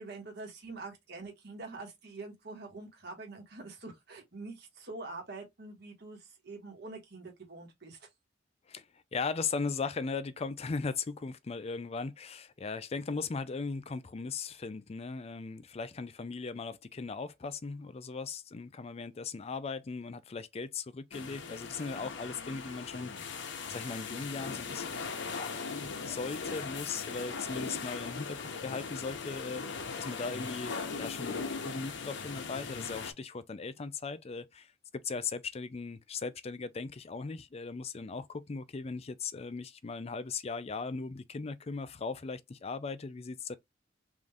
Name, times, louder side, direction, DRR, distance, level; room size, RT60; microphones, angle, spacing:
voice 1, 0.0-8.1, right 3 dB, 60° right, 1.4 m, -45 dB
voice 2, 9.1-43.6, left 4 dB, 30° left, 0.4 m, -38 dB
sound 1, 21.1-33.1, left 5 dB, 65° left, 0.8 m, -39 dB
3.7 x 2.6 x 3.3 m
head